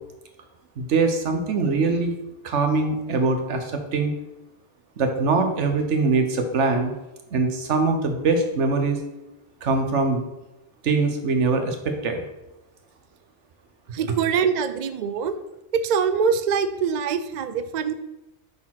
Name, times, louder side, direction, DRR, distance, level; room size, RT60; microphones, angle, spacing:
voice 1, 0.8-2.1 2.4-4.1 5.0-6.9 7.3-9.0 9.6-10.2 10.8-12.2, right 3 dB, 75° right, 5 dB, 1.3 m, -22 dB
voice 2, 13.9-15.3 15.7-17.9, right 6 dB, 55° right, 10 dB, 0.5 m, -24 dB
6.7 x 4.2 x 5.7 m, 0.97 s
omnidirectional pair, 1.2 m